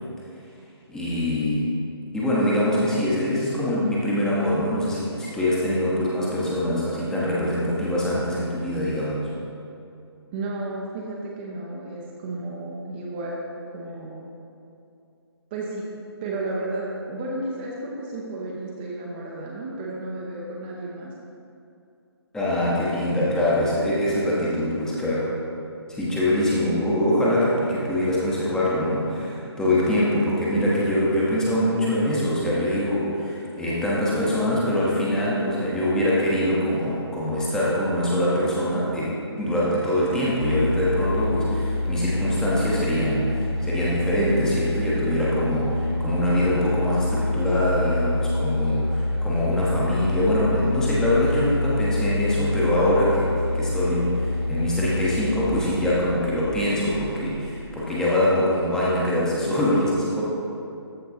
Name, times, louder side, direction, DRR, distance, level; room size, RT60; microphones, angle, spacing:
voice 1, 0.9-1.7 2.1-9.3 22.3-25.4 25.9-60.2, left 1 dB, 5° left, -7 dB, 1.0 m, -23 dB
voice 2, 10.3-13.4 13.7-14.3 15.5-15.9 16.2-21.1, right 2 dB, 20° right, -4 dB, 0.8 m, -32 dB
sound 1, 40.3-58.1, left 2 dB, 70° right, 1.7 m, -27 dB
13.5 x 4.5 x 4.2 m, 2.6 s
figure-of-eight pair, 145°, 14 cm